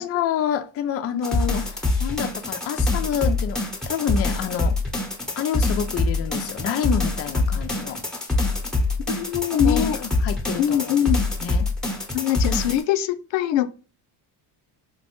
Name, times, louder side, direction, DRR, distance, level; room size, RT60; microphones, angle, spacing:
voice 1, 0.0-4.8 5.4-8.0 9.6-11.1 11.4-11.7, left 9 dB, 35° left, 0.4 m, -28 dB
sound 1, 1.2-12.8, left 2 dB, ahead, 0.8 m, -24 dB
voice 2, 9.1-10.0 10.6-11.3 12.1-13.7, left 11 dB, 85° left, 0.5 m, -22 dB
4.5 x 2.1 x 2.9 m
cardioid pair, 115°, 43 cm